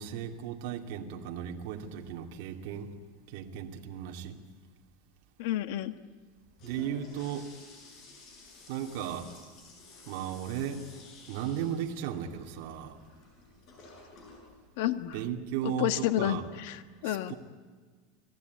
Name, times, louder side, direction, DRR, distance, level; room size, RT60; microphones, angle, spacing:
voice 1, 0.0-2.9 3.3-4.4 6.6-7.5 8.7-9.3 10.1-10.8 11.3-13.0 15.1-16.4 17.0-17.3, right 9 dB, 60° right, 2 dB, 2.5 m, -36 dB
voice 2, 5.4-5.9 14.8-15.1 15.6-17.3, left 13 dB, 65° left, 11 dB, 1.5 m, -30 dB
Toilet flush, 6.3-15.7, left 3 dB, 35° left, 7.9 m, -53 dB
29.5 x 19.0 x 9.5 m, 1.5 s
supercardioid pair, 165°, 0 cm